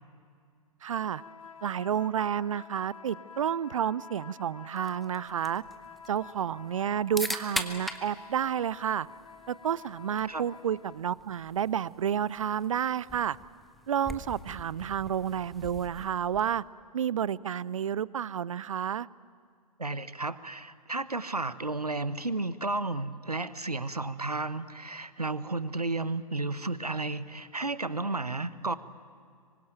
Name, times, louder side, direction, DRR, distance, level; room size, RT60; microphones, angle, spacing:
voice 1, 0.8-1.2 1.6-5.6 6.1-9.1 9.5-13.4 13.9-16.6 16.9-19.1, right 9 dB, 60° right, 22 dB, 0.6 m, -30 dB
sound 1, 0.9-11.1, left 6 dB, 65° left, 1.0 m, -49 dB
sound 2, 4.8-16.7, equal, ahead, 1.1 m, -42 dB
voice 2, 19.8-28.8, right 2 dB, 85° right, 15 dB, 1.1 m, -33 dB
26.0 x 24.0 x 9.2 m, 2.2 s
figure-of-eight pair, 115°, 19 cm